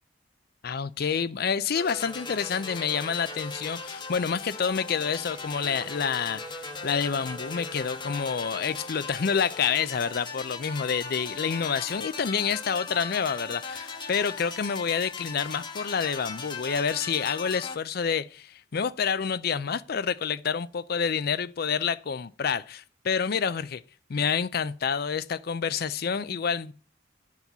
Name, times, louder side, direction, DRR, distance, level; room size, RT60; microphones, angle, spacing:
voice 1, 0.6-6.4 6.8-23.8 24.1-26.7, left 6 dB, 50° left, 0.4 m, -28 dB
sound 1, 1.8-17.8, left 4 dB, 25° left, 1.1 m, -38 dB
10.5 x 4.8 x 6.7 m
head